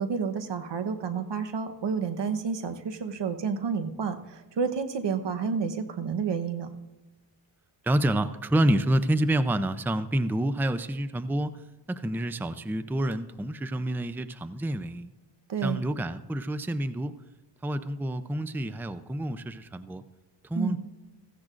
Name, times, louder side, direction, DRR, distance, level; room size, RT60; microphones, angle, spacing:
voice 1, 0.0-6.7 15.5-15.8 20.5-20.8, right 6 dB, 75° right, 9 dB, 1.1 m, -30 dB
voice 2, 7.8-15.1 15.6-17.2 17.6-20.0 20.4-20.8, right 1 dB, 5° right, 12 dB, 0.4 m, -28 dB
16.5 x 15.0 x 2.5 m, 1.1 s
cardioid pair, 80°, 43 cm